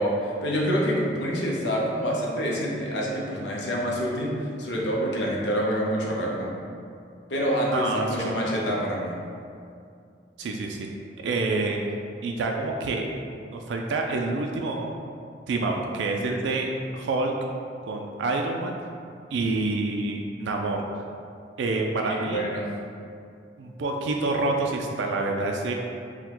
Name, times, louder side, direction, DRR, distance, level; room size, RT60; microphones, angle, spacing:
voice 1, 0.0-6.6 7.3-9.2 22.0-22.6, equal, 70° left, -3 dB, 0.7 m, -27 dB
voice 2, 7.7-8.4 10.4-10.9 11.2-11.8 12.2-13.0 13.5-14.9 15.5-16.7 16.9-17.3 17.8-18.8 19.3-20.8 21.6-22.4 23.6-25.7, right 3 dB, 85° right, 2 dB, 0.3 m, -27 dB
4.6 x 2.2 x 3.7 m, 2.4 s
head